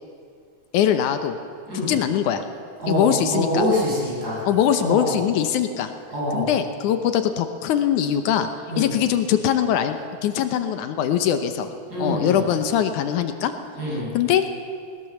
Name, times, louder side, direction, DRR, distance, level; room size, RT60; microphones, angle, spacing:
voice 1, 0.7-1.4 1.7-2.4 2.9-3.6 4.5-5.9 6.3-8.5 8.8-11.7 12.0-13.5 14.1-14.4, left 9 dB, 80° left, 8 dB, 2.4 m, -22 dB
voice 2, 2.8-4.5 4.8-5.2 6.1-6.5 8.7-8.9 11.9-12.5 13.8-14.1, equal, 30° right, -7 dB, 7.9 m, -25 dB
20.0 x 19.5 x 7.1 m, 2.3 s
omnidirectional pair, 3.5 m